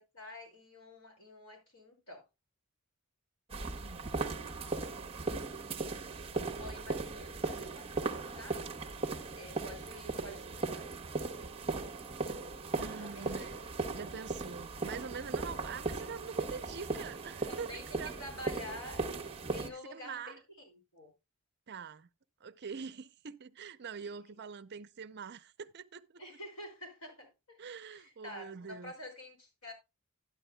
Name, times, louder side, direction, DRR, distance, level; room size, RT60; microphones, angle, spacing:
voice 1, 0.0-2.2 6.3-8.6 9.4-10.9 12.9-13.5 17.5-20.2 20.6-21.1 26.2-27.6 27.9-29.7, left 1 dB, 85° left, 5.8 m, -49 dB
sound 1, 3.5-19.7, right 3 dB, 25° right, 1.1 m, -38 dB
voice 2, 3.8-4.1 12.8-13.6 13.9-18.1 19.5-20.4 21.7-22.1 22.4-26.2 27.6-28.9, right 5 dB, 50° right, 0.6 m, -44 dB
12.5 x 10.5 x 2.3 m
head